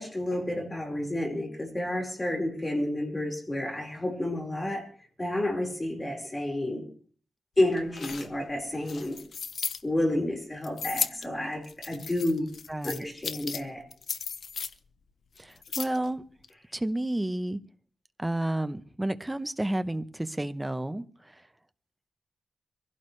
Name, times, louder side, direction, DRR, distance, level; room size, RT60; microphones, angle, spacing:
voice 1, 0.0-4.9 5.2-6.8 7.6-9.2 9.8-12.5 12.8-13.8, left 1 dB, 20° left, 1 dB, 4.7 m, -30 dB
sound 1, 7.7-9.8 10.6-11.3 11.6-13.6 13.9-14.7 15.4-16.1 16.4-16.5, left 6 dB, 70° left, 0.8 m, -35 dB
voice 2, 12.7-13.0 15.4-16.2 16.7-17.6 18.2-21.1, right 1 dB, 10° right, 12 dB, 0.9 m, -31 dB
23.5 x 16.5 x 3.3 m, 0.42 s
wide cardioid pair, 120°, 0 cm